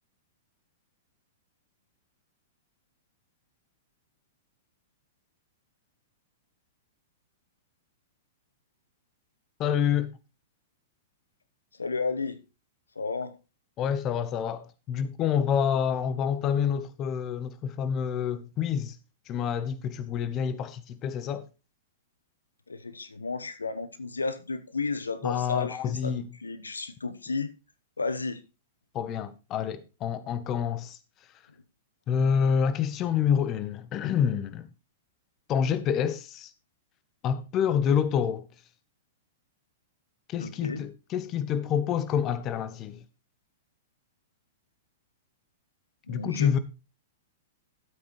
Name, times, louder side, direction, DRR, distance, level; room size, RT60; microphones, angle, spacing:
voice 1, 9.6-10.1 13.8-19.0 19.3-21.5 25.2-26.3 28.9-31.0 32.1-34.7 35.5-36.5 37.2-38.4 40.3-43.0 46.1-46.6, left 8 dB, 30° left, 0.9 m, -27 dB
voice 2, 11.7-12.4 12.9-13.4 22.7-27.5 28.0-28.4 40.4-40.9 46.1-46.6, left 4 dB, 85° left, 1.0 m, -33 dB
12.5 x 8.4 x 3.1 m
figure-of-eight pair, 105°, 0 cm